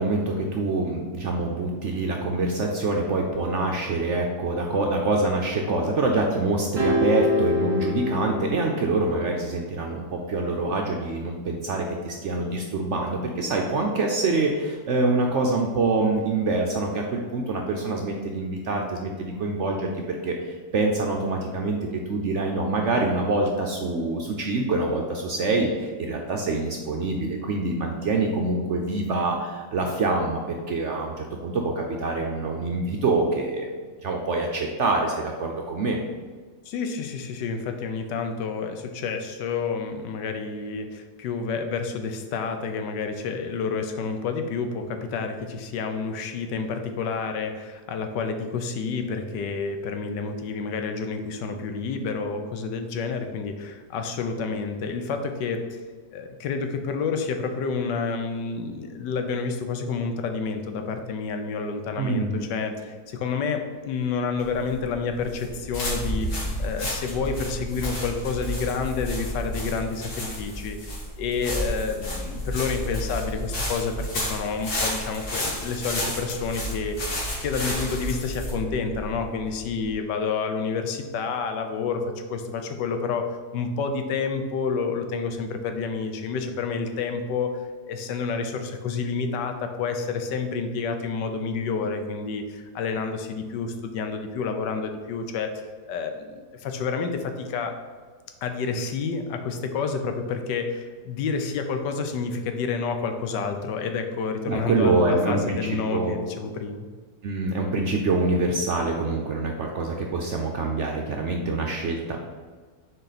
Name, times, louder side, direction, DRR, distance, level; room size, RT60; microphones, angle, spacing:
voice 1, 0.0-21.8 22.1-33.7 34.0-36.0 62.0-62.5 104.5-106.2 107.2-112.2, right 3 dB, 65° right, 1 dB, 0.7 m, -25 dB
sound 1, 6.8-9.2, left 2 dB, 20° right, 1.5 m, -25 dB
voice 2, 36.7-55.8 56.1-87.6 87.9-95.5 95.9-97.7 98.4-106.9, left 5 dB, 85° left, 6 dB, 1.3 m, -29 dB
sound 2, 64.4-79.9, equal, 65° left, 2.4 m, -31 dB
6.5 x 4.5 x 4.1 m, 1.5 s
omnidirectional pair, 1.8 m